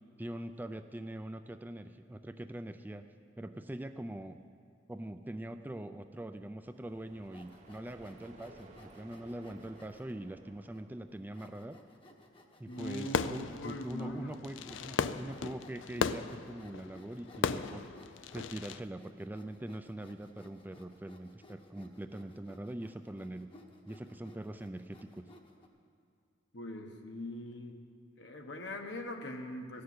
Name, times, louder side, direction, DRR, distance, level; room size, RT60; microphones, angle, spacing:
voice 1, 0.2-3.0 3.4-4.4 4.9-11.8 12.6-17.9 18.3-23.5 23.9-25.3, right 1 dB, 10° right, 8 dB, 0.3 m, -43 dB
sound 1, 6.7-12.4, right 2 dB, 40° right, 1.0 m, -58 dB
Sawing, 7.2-10.1 10.7-10.8 11.3-25.7, left 2 dB, 30° left, 1.0 m, -59 dB
voice 2, 12.7-14.8 26.5-27.8 28.2-29.8, left 1 dB, 65° left, 4 dB, 1.2 m, -42 dB
Fireworks, 12.8-18.8, left 6 dB, 85° left, 0.4 m, -36 dB
14.5 x 6.7 x 9.4 m, 2.2 s
head